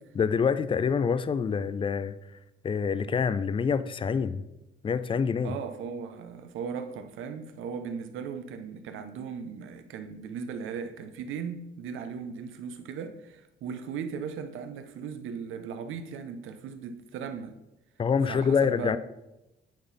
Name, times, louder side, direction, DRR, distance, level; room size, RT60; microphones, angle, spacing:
voice 1, 0.1-2.2 2.6-4.4 4.8-5.5 18.0-19.0, left 6 dB, 25° left, 0.4 m, -26 dB
voice 2, 5.4-17.6 18.3-19.0, right 6 dB, 85° right, 0.7 m, -37 dB
8.7 x 4.1 x 4.0 m
cardioid pair, 90°, 20 cm